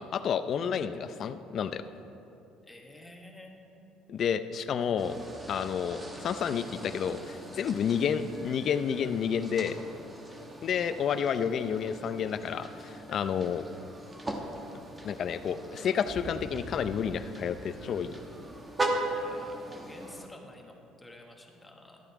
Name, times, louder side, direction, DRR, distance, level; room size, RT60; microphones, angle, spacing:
voice 1, 0.0-1.8 4.1-5.2 5.5-9.8 10.6-13.6 15.0-18.1, left 7 dB, 50° left, 11 dB, 0.5 m, -30 dB
voice 2, 2.6-4.0 19.1-22.0, left 1 dB, 10° left, 1 dB, 1.4 m, -50 dB
sound 1, 5.0-20.3, right 1 dB, 15° right, 1.2 m, -39 dB
13.0 x 8.8 x 4.7 m, 2.8 s
cardioid pair, 110°, 0 cm